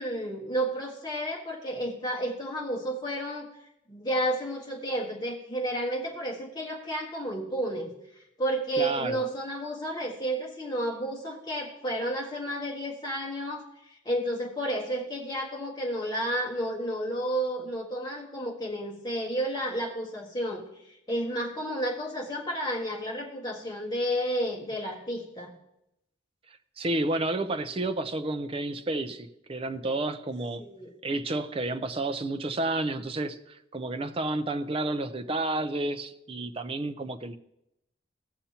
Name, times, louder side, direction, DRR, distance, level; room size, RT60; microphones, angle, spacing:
voice 1, 0.0-3.5 3.9-7.9 8.4-20.6 21.1-25.5 30.6-30.9, right 1 dB, 20° left, -2 dB, 1.6 m, -31 dB
voice 2, 8.8-9.2 26.8-30.6 31.0-37.4, right 2 dB, 30° right, 9 dB, 0.5 m, -31 dB
17.0 x 6.8 x 2.9 m, 0.83 s
head